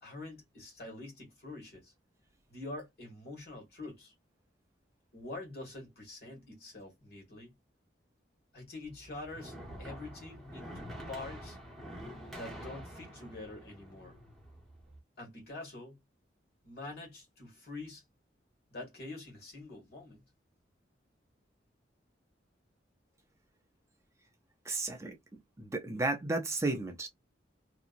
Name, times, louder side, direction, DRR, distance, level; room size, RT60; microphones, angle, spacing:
voice 1, 0.0-1.9 2.5-4.1 5.1-7.5 8.5-11.6 12.3-14.2 15.2-16.0 16.6-18.0 18.7-20.2, left 2 dB, 55° left, 1.7 m, -46 dB
sound 1, 8.8-15.0, equal, ahead, 0.9 m, -47 dB
voice 2, 24.7-25.2 25.6-27.1, right 2 dB, 15° right, 0.5 m, -33 dB
2.9 x 2.6 x 2.5 m
head